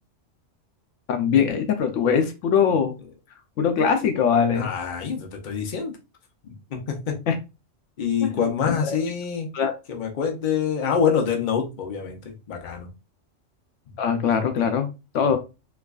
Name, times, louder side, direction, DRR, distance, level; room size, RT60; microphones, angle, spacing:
voice 1, 1.1-2.9 3.6-4.7 7.3-7.4 8.2-8.3 8.7-9.0 9.5-9.7 14.0-14.9 15.1-15.4, left 7 dB, 80° left, 6 dB, 1.0 m, -21 dB
voice 2, 4.5-6.0 6.4-7.2 8.0-9.5 9.9-12.9 13.9-14.0, left 7 dB, 45° left, 2 dB, 0.8 m, -26 dB
4.6 x 2.3 x 2.4 m, 0.27 s
omnidirectional pair, 1.3 m